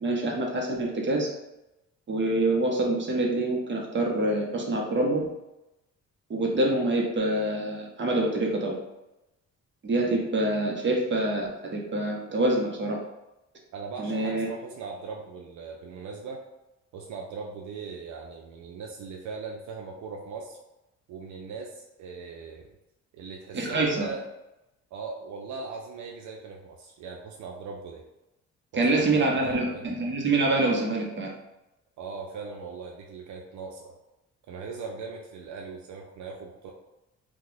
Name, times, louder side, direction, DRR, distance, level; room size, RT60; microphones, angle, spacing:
voice 1, 0.0-1.3 2.1-5.3 6.3-8.7 9.8-13.0 14.0-14.5 23.5-24.1 28.8-31.3, right 2 dB, 40° right, -1 dB, 0.8 m, -26 dB
voice 2, 13.7-16.4 16.9-20.6 21.1-22.7 23.1-24.3 24.9-28.0 28.7-29.9 32.0-34.0 34.5-36.7, right 4 dB, 75° right, 0 dB, 0.5 m, -39 dB
2.8 x 2.3 x 3.9 m, 0.95 s
cardioid pair, 90°, 30 cm